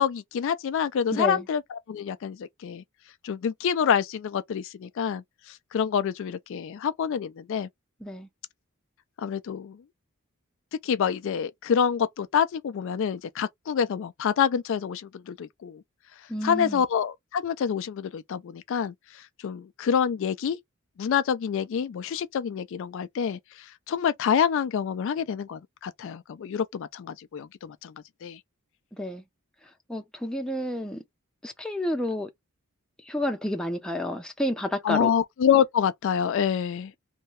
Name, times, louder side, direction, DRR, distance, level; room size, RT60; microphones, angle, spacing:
voice 1, 0.0-1.6 1.9-2.8 3.2-5.2 5.5-7.7 9.2-9.8 10.8-15.8 16.4-18.9 19.4-20.6 21.0-23.4 23.9-27.9 28.2-28.4 34.8-36.9, left 7 dB, 60° left, 0.3 m, -27 dB
voice 2, 1.1-1.5 8.0-8.3 16.3-16.8 28.9-29.2 29.9-31.0 31.4-32.3 33.1-35.1, left 1 dB, 5° left, 0.6 m, -30 dB
2.7 x 2.2 x 3.0 m
head